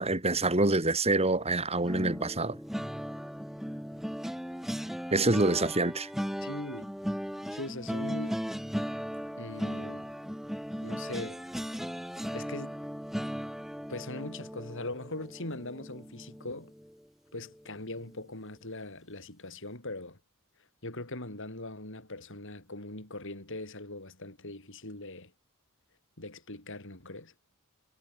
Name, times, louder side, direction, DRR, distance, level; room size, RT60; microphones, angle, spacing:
voice 1, 0.0-2.6 5.1-6.1, right 2 dB, 30° right, 3.7 m, -26 dB
sound 1, 1.8-17.0 17.4-17.7 17.9-18.2, equal, ahead, 2.5 m, -37 dB
voice 2, 6.4-6.9 7.5-8.4 9.4-10.1 10.8-11.4 12.3-12.8 13.9-16.7 17.3-20.2 20.8-25.3 26.2-27.3, left 2 dB, 65° left, 7.5 m, -41 dB
head